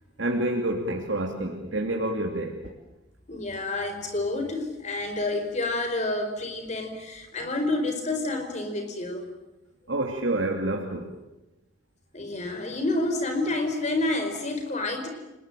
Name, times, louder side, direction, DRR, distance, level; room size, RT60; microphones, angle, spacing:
voice 1, 0.2-2.5 9.9-11.1, right 1 dB, 75° right, 2 dB, 2.7 m, -28 dB
voice 2, 3.3-9.3 12.1-15.1, left 2 dB, 35° left, 6 dB, 4.6 m, -29 dB
29.5 x 20.0 x 9.2 m, 0.99 s
head